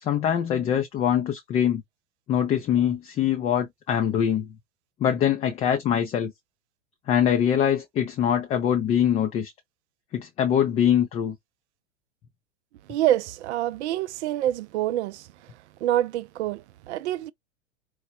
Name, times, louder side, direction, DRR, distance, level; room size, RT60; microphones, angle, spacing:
voice 1, 0.0-1.8 2.3-4.5 5.0-6.3 7.1-9.5 10.1-11.4, left 9 dB, 20° left, 0.3 m, -23 dB
voice 2, 12.9-15.5 15.8-17.3, right 13 dB, 65° right, 0.5 m, -26 dB
4.5 x 2.1 x 2.7 m
hypercardioid pair, 100°, 38 cm